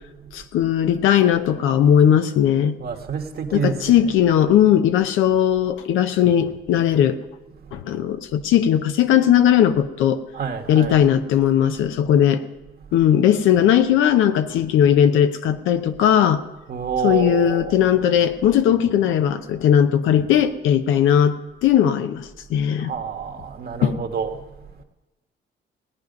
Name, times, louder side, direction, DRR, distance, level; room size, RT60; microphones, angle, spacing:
voice 1, 0.3-2.8 3.5-7.2 7.7-10.2 10.7-12.4 12.9-16.4 17.0-21.4 21.6-22.9 23.8-23.9, left 9 dB, 85° left, 9 dB, 0.8 m, -18 dB
voice 2, 2.8-4.2 7.6-7.7 10.3-11.0 12.9-13.0 16.7-17.8 22.8-24.4, right 6 dB, 50° right, 5 dB, 1.5 m, -28 dB
17.5 x 9.6 x 5.3 m, 1.1 s
cardioid pair, 90°, 20 cm